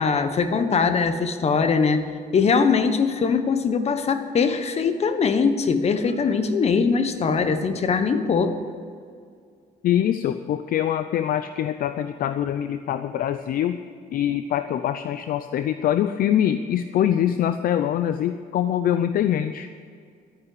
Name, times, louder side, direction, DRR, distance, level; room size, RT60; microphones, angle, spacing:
voice 1, 0.0-2.1 2.3-8.6, left 5 dB, 40° left, 9 dB, 1.3 m, -21 dB
voice 2, 9.8-13.8 14.1-19.7, left 10 dB, 60° left, 10 dB, 0.6 m, -24 dB
12.5 x 10.0 x 7.9 m, 2.2 s
cardioid pair, 110°, 17 cm